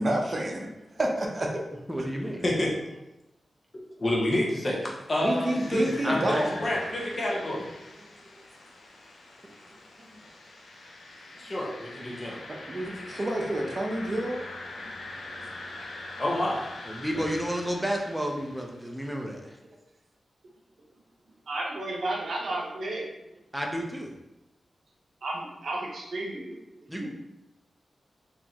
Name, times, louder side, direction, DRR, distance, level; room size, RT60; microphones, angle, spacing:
voice 1, 0.0-1.6 2.0-2.1 5.2-6.6 12.5-14.4 14.8-15.0, right 1 dB, 45° right, 1 dB, 0.7 m, -29 dB
voice 2, 1.9-2.4 6.0-6.7 16.9-19.6 23.5-24.2 26.9-27.1, equal, 5° right, 1 dB, 0.6 m, -31 dB
voice 3, 4.0-7.6 11.4-12.5 16.2-16.7, left 1 dB, 40° left, -2 dB, 1.1 m, -28 dB
sound 1, 5.0-18.9, left 2 dB, 85° left, 0.6 m, -43 dB
voice 4, 21.5-23.1 25.2-27.1, right 2 dB, 75° right, -1 dB, 0.8 m, -33 dB
3.9 x 3.0 x 2.9 m, 0.93 s
cardioid pair, 65°, 0 cm